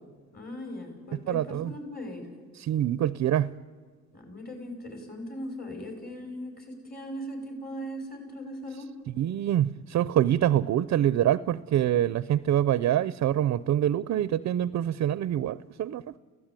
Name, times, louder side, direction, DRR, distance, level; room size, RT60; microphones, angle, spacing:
voice 1, 0.3-2.3 4.1-8.9, equal, 30° left, 4 dB, 6.1 m, -39 dB
voice 2, 1.3-1.7 2.6-3.5 9.2-16.2, right 11 dB, 60° right, 17 dB, 0.6 m, -25 dB
29.5 x 16.5 x 9.0 m, 1.5 s
cardioid pair, 90°, 30 cm